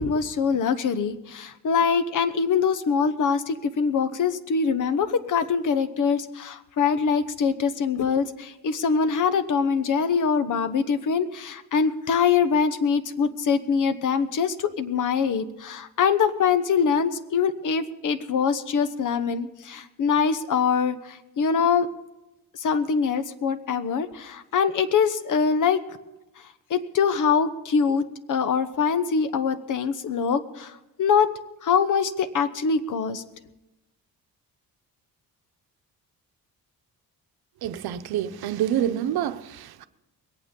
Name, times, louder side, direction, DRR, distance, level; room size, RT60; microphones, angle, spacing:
voice 1, 0.0-21.9 22.5-25.8 26.7-31.3 31.6-33.2, left 6 dB, 55° left, 1.0 m, -23 dB
voice 2, 37.6-39.9, right 10 dB, 85° right, 0.8 m, -27 dB
21.5 x 8.9 x 5.4 m
cardioid pair, 130°, 36 cm